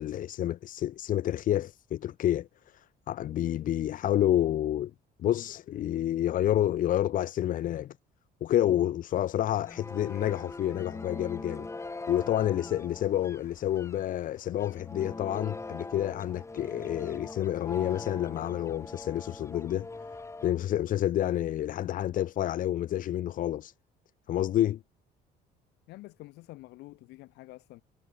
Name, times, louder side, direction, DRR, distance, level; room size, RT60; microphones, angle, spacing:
voice 1, 0.0-4.9 5.2-7.9 8.4-11.7 12.1-19.9 20.4-23.7 24.3-24.8, left 12 dB, 55° left, 0.6 m, -29 dB
sound 1, 9.6-20.5, left 3 dB, 15° left, 4.1 m, -42 dB
voice 2, 25.9-27.8, left 19 dB, 85° left, 1.9 m, -48 dB
cardioid pair, 110°, 17 cm